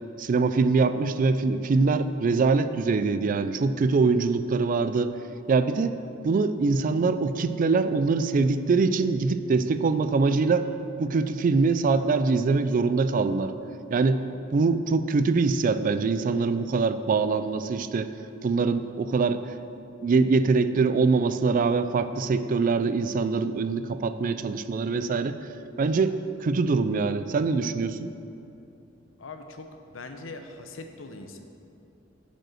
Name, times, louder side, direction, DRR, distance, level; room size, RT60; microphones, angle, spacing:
voice 1, 0.2-5.1 5.5-5.9 6.2-10.7 11.0-13.5 13.9-14.2 14.5-18.1 18.4-19.4 20.0-25.4 25.8-26.2 26.4-28.1, right 4 dB, 45° right, 11 dB, 0.3 m, -23 dB
voice 2, 29.2-31.4, left 3 dB, 75° left, 6 dB, 0.7 m, -41 dB
9.0 x 5.2 x 6.2 m, 2.8 s
head